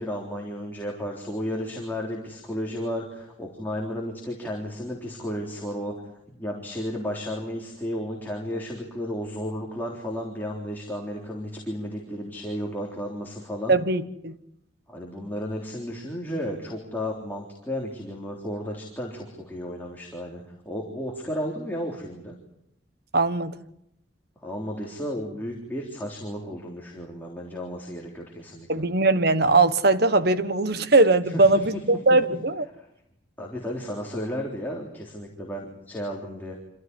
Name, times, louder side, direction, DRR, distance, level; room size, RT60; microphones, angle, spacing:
voice 1, 0.0-5.9 6.3-13.8 14.9-22.4 24.4-28.8 31.2-31.8 32.8-32.9 33.4-36.5, equal, 10° left, 3.6 m, -33 dB
voice 2, 13.7-14.3 23.1-23.5 28.7-32.7, right 3 dB, 55° right, 1.3 m, -20 dB
26.5 x 16.0 x 9.8 m
head